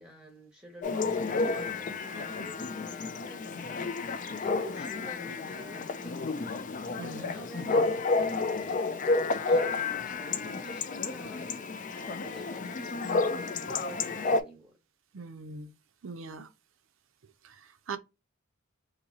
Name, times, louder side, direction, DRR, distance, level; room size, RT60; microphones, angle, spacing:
voice 1, 0.0-11.6 11.9-14.8, equal, 5° right, 0.9 m, -48 dB
Chatter / Bark / Livestock farm animals working animals, 0.8-14.4, left 3 dB, 35° left, 0.4 m, -31 dB
voice 2, 7.0-7.4 15.1-15.7 16.0-16.5 17.4-18.0, right 4 dB, 65° right, 0.5 m, -41 dB
3.0 x 2.7 x 3.8 m
head